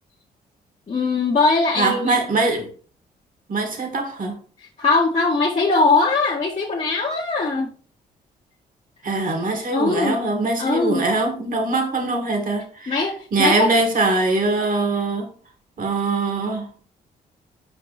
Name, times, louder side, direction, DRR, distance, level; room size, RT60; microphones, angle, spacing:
voice 1, 0.9-2.2 4.8-7.7 9.7-10.2 10.6-11.0 12.9-13.7, left 3 dB, 40° left, 1.4 m, -20 dB
voice 2, 1.8-2.7 3.5-4.4 9.0-12.9 13.3-15.3 15.8-16.9, right 3 dB, 50° right, 2.0 m, -22 dB
5.2 x 4.6 x 4.1 m
supercardioid pair, 55°, 18 cm